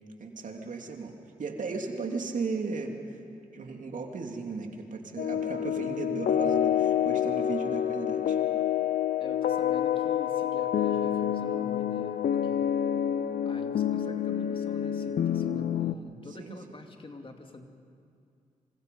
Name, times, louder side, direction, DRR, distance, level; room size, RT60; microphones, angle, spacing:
voice 1, 0.2-1.1 1.4-3.2 3.5-8.4 16.4-16.8, right 4 dB, 65° right, 3 dB, 2.7 m, -36 dB
sound 1, 5.2-15.9, left 10 dB, 75° left, 0.7 m, -28 dB
voice 2, 9.2-12.8 13.4-17.6, left 2 dB, 40° left, 4 dB, 2.4 m, -46 dB
27.5 x 25.0 x 5.4 m, 2.4 s
cardioid pair, 55°, 14 cm